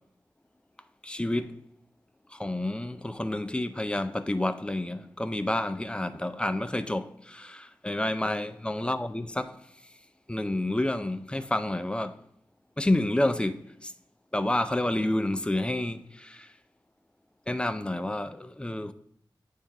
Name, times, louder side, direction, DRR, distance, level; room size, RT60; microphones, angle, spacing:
voice 1, 1.0-1.6 2.3-9.7 10.3-12.2 12.8-13.9 14.3-16.5 17.5-18.9, left 1 dB, 10° left, 0.4 m, -29 dB
9.1 x 3.5 x 5.3 m
wide cardioid pair, 100°, 8 cm